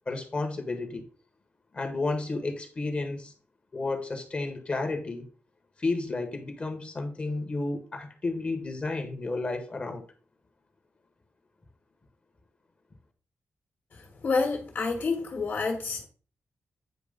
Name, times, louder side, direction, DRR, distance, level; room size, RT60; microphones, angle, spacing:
voice 1, 0.1-1.0 1.7-3.3 3.7-5.3 5.8-10.0, left 3 dB, 30° left, 1.2 m, -32 dB
voice 2, 14.2-16.1, left 4 dB, 50° left, 1.6 m, -28 dB
9.1 x 3.0 x 5.1 m
wide cardioid pair, 170°, 4 cm